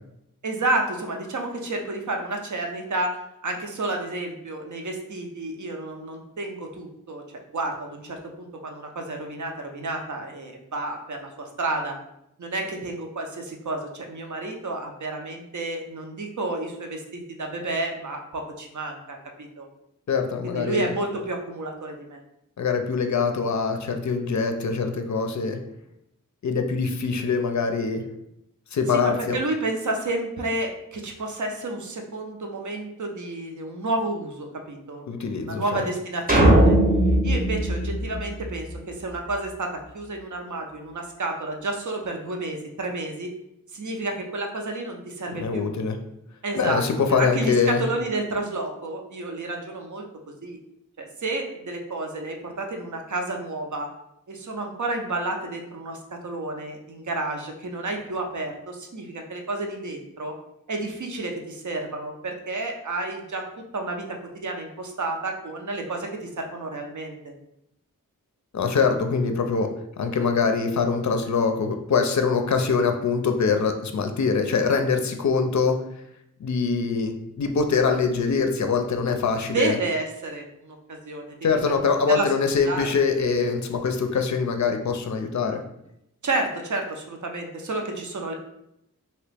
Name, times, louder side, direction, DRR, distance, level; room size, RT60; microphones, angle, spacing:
voice 1, 0.4-7.2 7.5-12.0 12.4-19.7 20.4-22.2 28.9-36.7 37.2-43.3 43.7-45.7 46.4-46.8 47.2-50.6 51.0-53.9 54.3-60.4 60.7-67.3 79.5-81.7 82.1-82.3 82.7-82.9 86.2-88.3, right 2 dB, 60° right, 3 dB, 0.6 m, -31 dB
voice 2, 20.1-20.9 22.6-25.6 26.4-28.0 28.7-29.4 35.1-35.8 45.4-46.0 46.5-47.8 68.5-69.7 70.0-75.8 76.4-79.8 81.4-85.6, left 5 dB, 55° left, 5 dB, 0.5 m, -23 dB
sound 1, 36.3-38.8, right 1 dB, 25° right, 0.8 m, -19 dB
2.9 x 2.8 x 3.3 m, 0.80 s
wide cardioid pair, 55°, 34 cm